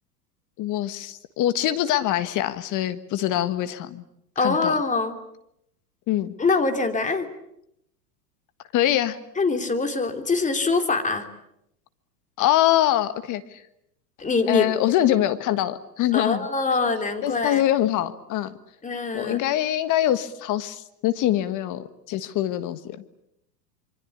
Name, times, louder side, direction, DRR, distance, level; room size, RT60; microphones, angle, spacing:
voice 1, 0.6-4.0 4.4-4.7 6.1-6.3 8.7-9.2 12.4-13.6 14.5-16.5 17.2-18.5 19.1-23.2, left 13 dB, 40° left, 12 dB, 1.5 m, -24 dB
voice 2, 4.4-5.2 6.4-7.3 9.4-11.3 14.2-14.8 16.1-17.6 18.8-19.4, left 3 dB, 15° left, 6 dB, 3.2 m, -24 dB
26.0 x 24.0 x 8.6 m, 0.79 s
hypercardioid pair, 105°, 49 cm